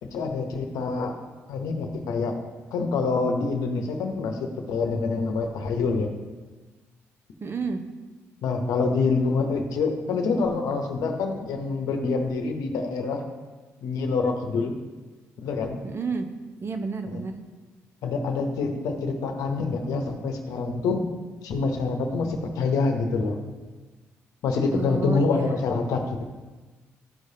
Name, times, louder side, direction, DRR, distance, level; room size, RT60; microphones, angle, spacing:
voice 1, 0.0-1.1 1.5-2.3 2.7-6.1 8.4-13.2 13.8-14.7 15.4-15.8 17.1-17.2 18.0-21.0 21.4-23.4 24.4-26.2, left 4 dB, 80° left, 4 dB, 0.9 m, -26 dB
voice 2, 7.4-7.8 15.8-16.3 16.6-17.3 24.7-25.5, right 4 dB, 45° right, 6 dB, 0.8 m, -30 dB
12.5 x 4.9 x 2.7 m, 1.3 s
supercardioid pair, 55°, 6 cm